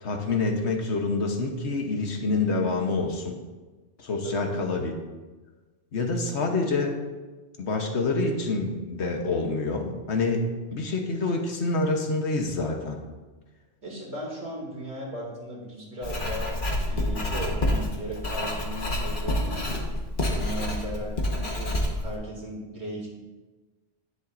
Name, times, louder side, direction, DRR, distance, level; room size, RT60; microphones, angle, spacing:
voice 1, 0.0-3.4 4.0-4.9 5.9-7.0 7.6-10.5 10.7-13.0, left 3 dB, 75° left, 3 dB, 1.4 m, -27 dB
voice 2, 13.8-19.7 20.2-23.1, equal, 70° right, -3 dB, 2.9 m, -37 dB
Writing, 16.0-22.1, left 1 dB, 45° left, 1.5 m, -28 dB
11.0 x 10.0 x 2.6 m, 1.2 s
omnidirectional pair, 1.2 m